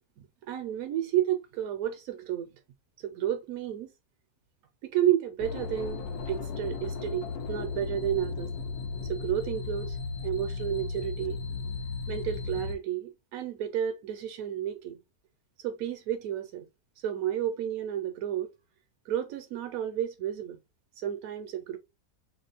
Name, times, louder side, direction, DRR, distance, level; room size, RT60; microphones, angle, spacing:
voice 1, 0.2-2.5 3.0-3.9 4.8-8.5 9.1-10.0 10.2-11.4 12.1-15.0 15.6-16.7 17.0-18.5 19.1-20.6 21.0-21.8, right 11 dB, 75° right, 1.0 m, -31 dB
sound 1, 5.4-12.7, left 4 dB, 80° left, 1.1 m, -35 dB
2.9 x 2.1 x 3.9 m
omnidirectional pair, 1.6 m